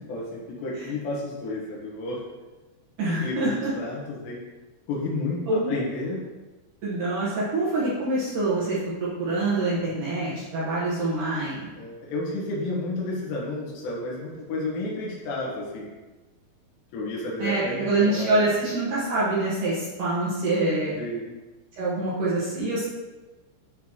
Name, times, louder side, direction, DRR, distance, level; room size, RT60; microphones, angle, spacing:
voice 1, 0.0-2.2 3.1-4.4 4.9-6.3 11.8-15.9 16.9-18.6 21.0-21.4, left 2 dB, 90° left, -5 dB, 3.5 m, -31 dB
voice 2, 3.0-3.7 5.5-5.8 6.8-8.8 9.2-11.7 17.4-20.9 21.8-22.8, right 2 dB, 65° right, -8 dB, 2.5 m, -25 dB
11.0 x 4.1 x 3.0 m, 1.2 s
omnidirectional pair, 4.8 m